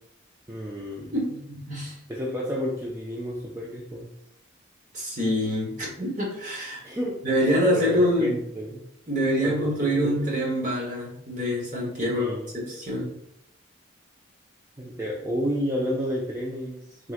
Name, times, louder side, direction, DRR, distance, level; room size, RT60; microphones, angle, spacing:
voice 1, 0.5-1.1 2.1-4.1 6.8-7.3 7.7-8.8 9.4-10.1 12.1-12.5 14.8-17.1, equal, 15° right, -3 dB, 0.4 m, -31 dB
voice 2, 1.1-1.9 4.9-6.8 7.2-8.3 9.1-12.3 12.5-13.1, equal, 40° right, -2 dB, 1.3 m, -25 dB
4.6 x 3.6 x 2.5 m, 0.75 s
head